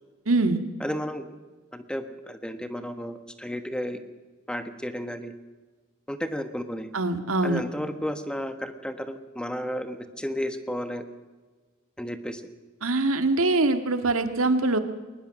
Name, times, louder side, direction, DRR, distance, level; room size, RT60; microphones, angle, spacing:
voice 1, 0.3-0.6 6.9-7.6 12.8-14.8, right 2 dB, 90° right, 8 dB, 1.8 m, -23 dB
voice 2, 0.8-1.3 1.7-4.0 4.5-5.3 6.1-6.9 7.4-11.0 12.0-12.4, equal, 5° left, 9 dB, 1.3 m, -33 dB
21.5 x 20.0 x 6.4 m, 1.3 s
head